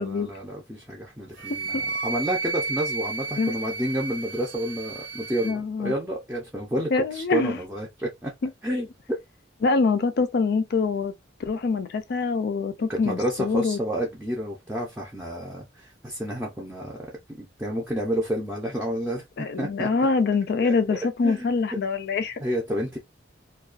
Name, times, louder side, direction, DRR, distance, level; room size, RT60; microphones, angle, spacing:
voice 1, 0.0-1.8 2.0-8.3 8.6-8.9 12.9-17.0 17.3-19.9 20.6-20.8 21.2-21.5 22.4-23.0, equal, 10° right, 0.5 m, -30 dB
Wind instrument woodwind instrument, 1.4-5.6, right 4 dB, 85° right, 0.5 m, -32 dB
voice 2, 5.4-5.9 6.9-7.6 8.4-8.5 9.6-11.1 11.4-13.8 19.4-22.4, left 4 dB, 55° left, 0.4 m, -24 dB
2.3 x 2.2 x 2.4 m
head